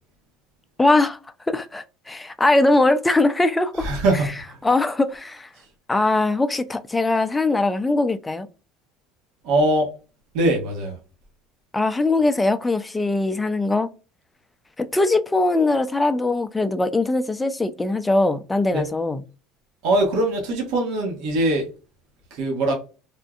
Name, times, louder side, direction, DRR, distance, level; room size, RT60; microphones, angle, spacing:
voice 1, 0.8-1.2 1.5-3.9 4.6-5.5 5.9-8.5 11.7-13.9 14.8-19.2, left 2 dB, 10° left, 0.3 m, -21 dB
voice 2, 3.8-4.6 5.6-5.7 9.4-9.9 10.3-11.0 18.7-18.8 19.8-21.7 22.3-22.7, right 1 dB, 70° right, 1.2 m, -22 dB
3.5 x 2.5 x 2.3 m
cardioid pair, 140°, 0 cm